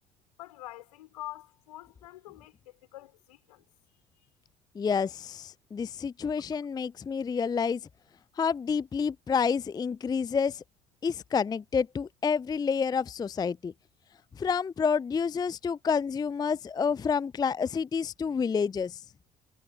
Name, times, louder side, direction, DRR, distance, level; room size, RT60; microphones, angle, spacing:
voice 1, 0.4-2.5 2.9-3.6, left 16 dB, 75° left, 5.0 m, -45 dB
voice 2, 4.8-7.8 8.4-10.6 11.0-13.7 14.4-19.0, left 6 dB, 20° left, 0.4 m, -29 dB
figure-of-eight pair, 45°, 20 cm